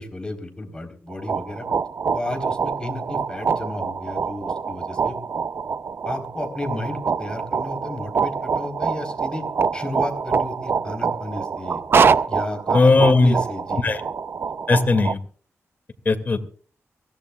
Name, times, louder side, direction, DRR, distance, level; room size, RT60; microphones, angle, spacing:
voice 1, 0.0-1.6 2.1-5.1 6.0-9.4 9.7-11.8 12.3-13.8, left 2 dB, 15° left, 4 dB, 3.9 m, -32 dB
sound 1, 1.1-15.1, right 5 dB, 50° right, 0.5 m, -25 dB
voice 2, 12.7-13.3 13.8-14.0 14.7-15.2 16.1-16.4, left 3 dB, 35° left, 7 dB, 2.2 m, -17 dB
24.0 x 16.5 x 2.4 m, 0.42 s
wide cardioid pair, 140°, 5 cm